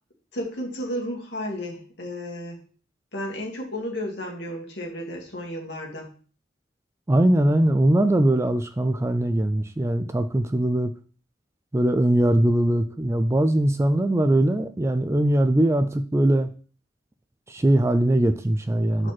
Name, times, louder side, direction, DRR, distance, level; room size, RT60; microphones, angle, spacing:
voice 1, 0.3-2.6 3.1-6.1 19.0-19.1, equal, 65° left, 0 dB, 1.9 m, -33 dB
voice 2, 7.1-10.9 11.7-16.5 17.5-19.1, right 1 dB, 15° right, 9 dB, 0.3 m, -21 dB
4.9 x 4.2 x 5.9 m, 0.39 s
head